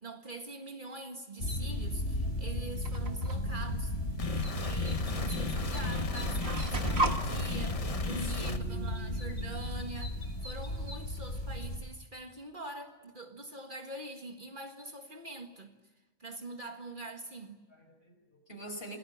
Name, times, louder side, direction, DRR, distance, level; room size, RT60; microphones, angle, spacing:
voice 1, 0.0-3.9 4.6-15.7 16.2-17.6, right 2 dB, 45° right, 2.0 m, -44 dB
sound 1, 1.4-11.8, left 1 dB, 75° left, 3.6 m, -35 dB
sound 2, 2.8-3.4 4.5-4.6 5.6-5.7 5.9-7.2, right 2 dB, 60° right, 1.8 m, -33 dB
sound 3, 4.2-8.6, left 4 dB, 30° left, 1.0 m, -36 dB
voice 2, 8.2-9.2 17.7-19.0, right 3 dB, 50° left, 5.6 m, -44 dB
28.0 x 19.0 x 8.6 m
omnidirectional pair, 1.2 m